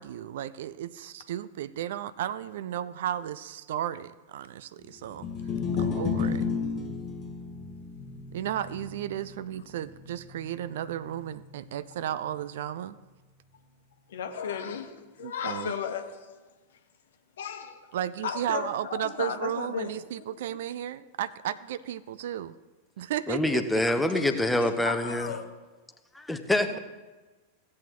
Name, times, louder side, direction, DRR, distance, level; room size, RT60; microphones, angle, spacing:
voice 1, 0.0-5.3 5.8-6.5 8.3-13.0 15.2-15.7 17.9-22.5 23.0-23.6 26.7-26.8, right 11 dB, 55° right, 16 dB, 0.4 m, -34 dB
sound 1, 5.1-11.5, left 5 dB, 30° left, 1.0 m, -33 dB
voice 2, 14.1-16.3 17.4-17.8 18.2-19.9 20.2-20.4 24.1-25.5, left 7 dB, 60° left, 7 dB, 1.0 m, -35 dB
voice 3, 23.3-25.3 26.1-26.8, left 1 dB, 5° left, 7 dB, 0.8 m, -26 dB
16.5 x 8.4 x 3.0 m, 1.2 s
figure-of-eight pair, 90°, 0 cm